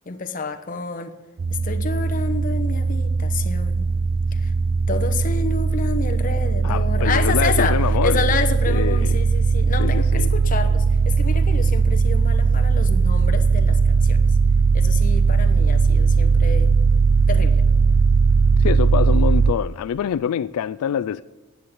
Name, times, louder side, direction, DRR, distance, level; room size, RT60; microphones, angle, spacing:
voice 1, 0.1-1.1 1.5-3.9 4.3-4.5 4.9-14.4 14.7-16.7 17.3-17.6, left 4 dB, 35° left, 0.9 m, -29 dB
sound 1, 1.4-19.5, right 4 dB, 40° right, 0.3 m, -18 dB
voice 2, 6.6-8.3 8.7-9.1 9.8-10.3 18.6-21.2, left 8 dB, 80° left, 0.3 m, -25 dB
10.0 x 8.0 x 8.8 m
head